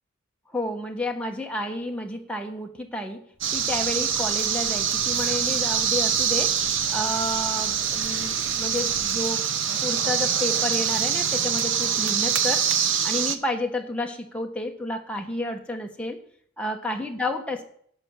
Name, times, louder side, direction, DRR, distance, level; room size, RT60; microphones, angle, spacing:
voice 1, 0.5-3.3 3.5-6.6 6.9-9.5 9.8-12.7 13.0-16.2 16.6-17.6, left 1 dB, 5° left, 2 dB, 1.2 m, -31 dB
Bird, 3.3-9.3, left 1 dB, 30° left, 5.8 m, -47 dB
sound 1, 3.4-13.4, right 8 dB, 60° right, 0.9 m, -24 dB
12.5 x 5.4 x 8.9 m, 0.64 s
head